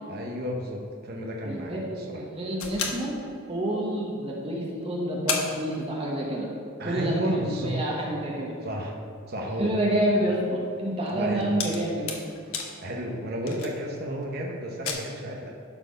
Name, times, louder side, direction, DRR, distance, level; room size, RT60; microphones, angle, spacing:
voice 1, 0.1-2.2 6.8-7.8 8.6-9.0 9.3-9.8 11.1-11.5 12.8-15.5, equal, 50° right, 0 dB, 0.9 m, -32 dB
voice 2, 1.4-3.2 3.5-6.5 6.8-8.5 9.6-12.1, right 1 dB, 25° right, -3 dB, 1.3 m, -28 dB
sound 1, 2.6-4.0 4.5-4.6 4.8-4.9 5.3-6.5 6.8-6.9 7.4-14.3 14.6-14.9, left 5 dB, 80° left, 1.2 m, -36 dB
12.0 x 4.6 x 5.1 m, 2.5 s
head